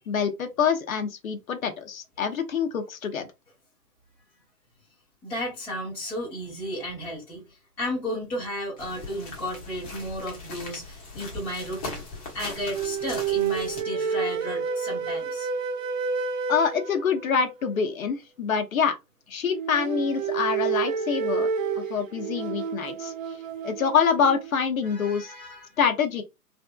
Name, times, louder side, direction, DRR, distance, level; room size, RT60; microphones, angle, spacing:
voice 1, 0.1-3.3 16.5-19.0 19.3-21.5 21.8-23.1 23.6-25.3 25.8-26.2, left 6 dB, 55° left, 0.8 m, -26 dB
voice 2, 5.2-7.5 7.8-12.0 12.3-15.5 24.8-25.7, equal, 5° left, 0.7 m, -33 dB
sound 1, 8.8-13.8, left 3 dB, 25° left, 0.9 m, -39 dB
sound 2, 12.7-17.5 19.5-24.5, right 6 dB, 55° right, 0.9 m, -29 dB
3.3 x 2.7 x 2.2 m
hypercardioid pair, 145°, 49 cm